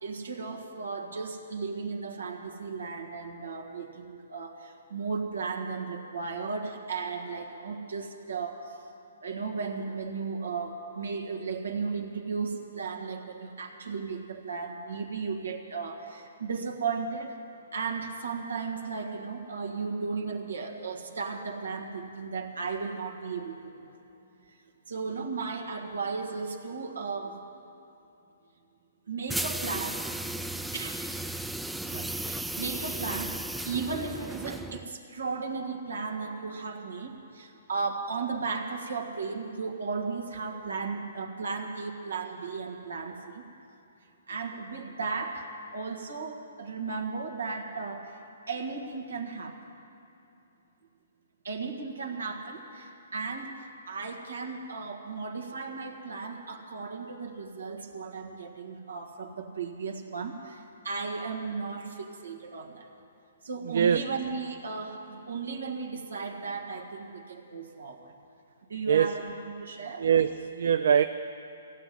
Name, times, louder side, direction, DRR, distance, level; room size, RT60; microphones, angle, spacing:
voice 1, 0.0-8.8 9.2-17.4 17.7-24.0 24.5-24.6 24.9-27.4 29.1-30.0 30.7-31.0 31.8-33.4 33.6-43.4 44.3-48.1 48.5-49.7 51.4-62.9 63.4-68.1 68.7-70.1, right 4 dB, 85° right, 3 dB, 1.6 m, -35 dB
sound 1, 29.3-34.9, right 1 dB, 5° right, 0.3 m, -35 dB
voice 2, 70.0-71.0, right 8 dB, 70° right, 10 dB, 0.4 m, -22 dB
15.5 x 7.9 x 9.9 m, 2.8 s
hypercardioid pair, 140°, 0 cm